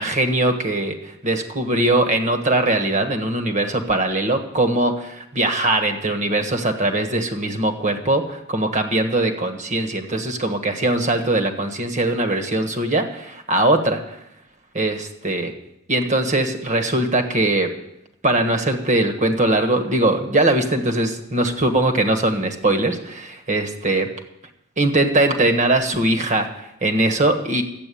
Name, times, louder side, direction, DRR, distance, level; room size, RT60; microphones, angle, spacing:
voice 1, 0.0-14.2 14.7-15.5 15.9-17.7 18.2-24.1 24.8-27.6, right 2 dB, 35° right, 7 dB, 1.5 m, -21 dB
12.5 x 8.6 x 8.5 m, 0.82 s
head